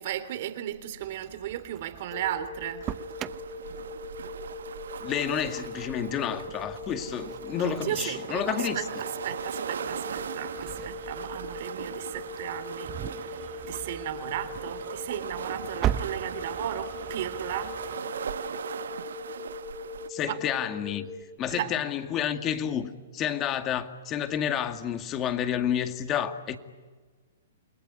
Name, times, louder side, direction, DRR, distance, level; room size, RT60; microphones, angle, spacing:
voice 1, 0.0-2.9 7.6-12.9 13.7-17.8 20.2-20.5 21.5-21.8, right 11 dB, 55° right, 3.1 m, -35 dB
Engine starting, 1.0-18.0, right 12 dB, 30° right, 0.9 m, -40 dB
sound 1, 2.1-21.2, left 3 dB, 55° left, 3.1 m, -41 dB
sound 2, 2.8-20.1, right 7 dB, 75° right, 1.2 m, -39 dB
voice 2, 5.0-8.8 20.1-21.1 21.4-26.6, left 9 dB, 30° left, 2.1 m, -30 dB
29.0 x 21.5 x 9.5 m
hypercardioid pair, 130°, 0 cm